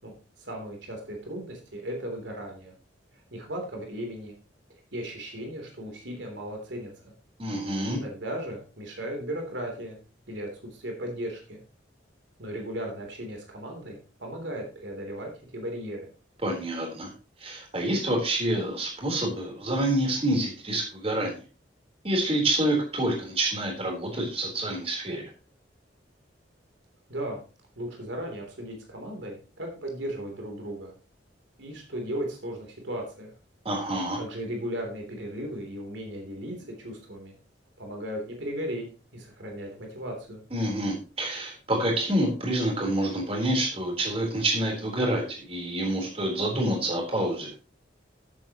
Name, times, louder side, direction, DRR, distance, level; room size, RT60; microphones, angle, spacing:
voice 1, 0.0-2.7 3.3-4.3 4.9-7.1 7.9-10.0 10.3-11.6 12.4-16.1 27.1-27.4 27.7-30.9 31.6-33.3 34.2-37.3 37.8-38.9 39.1-40.4, equal, 85° right, 1 dB, 3.3 m, -36 dB
voice 2, 7.4-8.0 16.4-17.1 17.4-21.4 22.0-25.2 33.6-34.2 40.5-47.5, right 1 dB, 30° right, 0 dB, 3.9 m, -27 dB
13.5 x 8.3 x 3.0 m, 0.34 s
head